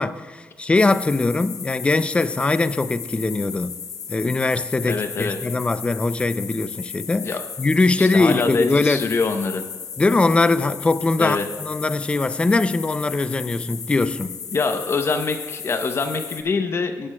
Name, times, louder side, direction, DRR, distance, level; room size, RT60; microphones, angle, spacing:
voice 1, 0.0-3.7 4.1-7.3 7.6-9.1 10.0-14.4, left 3 dB, 20° left, 0.4 m, -21 dB
sound 1, 0.7-16.4, left 7 dB, 80° left, 0.8 m, -35 dB
voice 2, 4.9-5.4 7.2-7.4 8.0-9.7 11.2-11.5 14.5-17.1, left 4 dB, 45° left, 0.7 m, -24 dB
17.5 x 9.8 x 2.2 m
wide cardioid pair, 125°, 6 cm